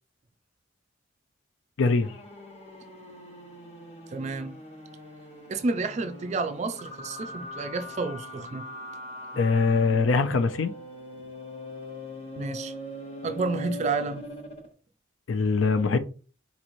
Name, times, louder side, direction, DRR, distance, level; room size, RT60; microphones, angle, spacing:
voice 1, 1.8-2.1 9.4-10.7 15.3-16.0, left 4 dB, 80° left, 0.4 m, -23 dB
sound 1, 2.0-14.7, equal, 30° left, 0.9 m, -41 dB
voice 2, 4.1-4.6 5.5-8.7 12.4-12.7 13.2-14.2, right 3 dB, 35° right, 0.3 m, -30 dB
4.0 x 3.0 x 2.6 m
head